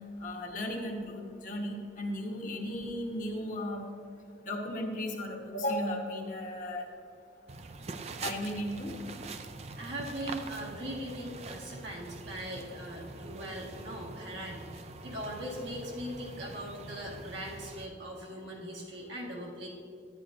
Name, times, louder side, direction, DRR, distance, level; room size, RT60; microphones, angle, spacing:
voice 1, 0.2-3.8 4.4-6.9 8.2-8.9, left 1 dB, 45° left, -1 dB, 1.0 m, -35 dB
sound 1, 7.5-17.9, right 3 dB, 35° right, 0.4 m, -44 dB
voice 2, 9.8-19.7, equal, 80° right, -3 dB, 1.7 m, -40 dB
11.0 x 9.9 x 2.6 m, 2.4 s
head